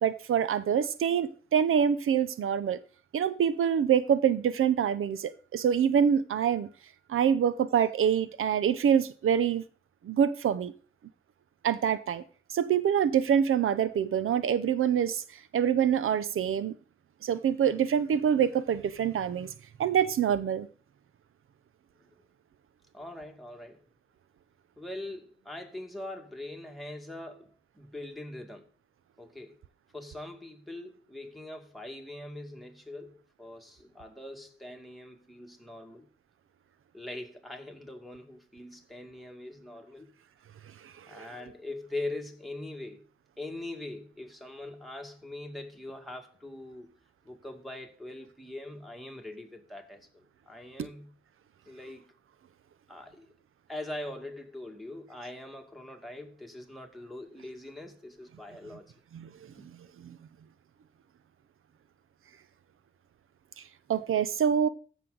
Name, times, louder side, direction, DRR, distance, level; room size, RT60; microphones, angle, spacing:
voice 1, 0.0-2.8 3.1-6.7 7.1-9.6 10.0-10.7 11.6-12.2 12.5-15.2 15.5-16.7 17.2-19.5 19.8-20.7 40.8-41.2 59.1-59.3 60.0-60.2 63.9-64.7, right 8 dB, 90° right, 0.6 m, -25 dB
voice 2, 22.9-23.8 24.8-28.7 29.2-29.6 29.9-36.1 36.9-40.1 41.1-43.0 43.4-46.9 47.2-51.1 51.7-52.1 52.9-53.3 53.7-58.9 59.6-59.7, left 1 dB, ahead, 2.1 m, -42 dB
14.5 x 6.3 x 3.9 m
wide cardioid pair, 100°, 21 cm